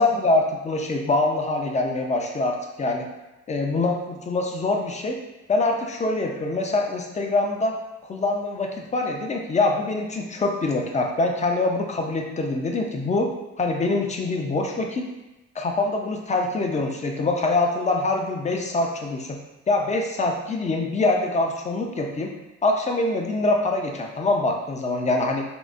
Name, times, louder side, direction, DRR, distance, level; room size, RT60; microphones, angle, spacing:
voice 1, 0.0-3.0 3.5-5.2 5.5-7.7 8.1-13.3 13.6-15.1 15.6-19.4 19.7-22.3 22.6-25.4, left 2 dB, 25° left, 2 dB, 0.4 m, -24 dB
3.6 x 2.0 x 2.4 m, 1.0 s
cardioid pair, 90°, 30 cm